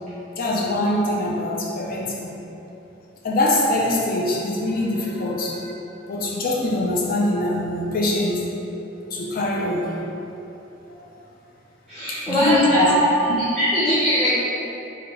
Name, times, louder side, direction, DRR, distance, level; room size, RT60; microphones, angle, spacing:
voice 1, 0.4-2.3 3.2-5.7 6.1-8.4 9.1-10.0 12.1-12.9 13.3-13.4, left 2 dB, 45° left, -3 dB, 0.5 m, -23 dB
voice 2, 11.9-13.1 13.4-14.4, right 1 dB, ahead, -14 dB, 0.6 m, -20 dB
3.6 x 2.2 x 3.3 m, 3.0 s
head